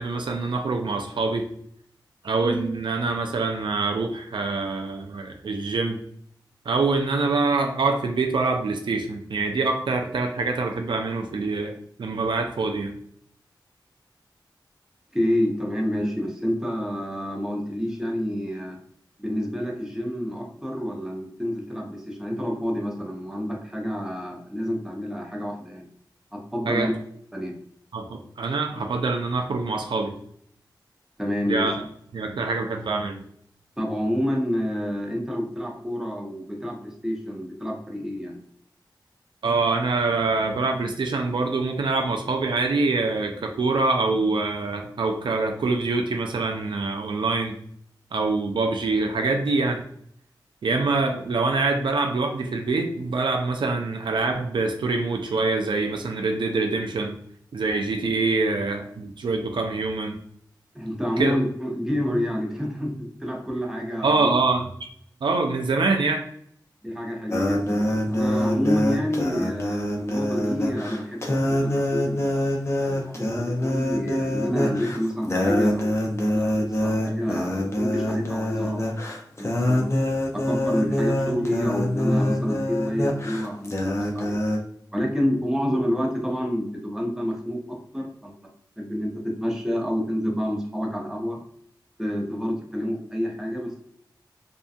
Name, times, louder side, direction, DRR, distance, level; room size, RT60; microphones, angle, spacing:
voice 1, 0.0-1.5 2.2-6.0 6.7-11.7 12.0-12.9 26.7-26.9 27.9-30.1 31.5-31.8 32.1-33.2 39.4-47.6 48.1-49.8 50.6-57.2 57.5-60.2 61.2-61.3 64.0-64.7 65.2-66.2, right 3 dB, 80° right, 3 dB, 0.4 m, -25 dB
voice 2, 15.1-18.8 19.2-25.9 26.3-26.9 27.3-27.5 31.2-31.7 33.8-38.4 60.7-64.3 66.8-72.5 72.8-78.8 79.4-79.9 80.3-84.4 84.9-88.3 88.8-89.1 89.4-91.4 92.0-93.8, equal, 5° right, 0 dB, 0.7 m, -28 dB
sound 1, 67.3-84.6, left 1 dB, 35° left, 0.5 m, -25 dB
2.6 x 2.2 x 2.4 m, 0.66 s
cardioid pair, 50°, 8 cm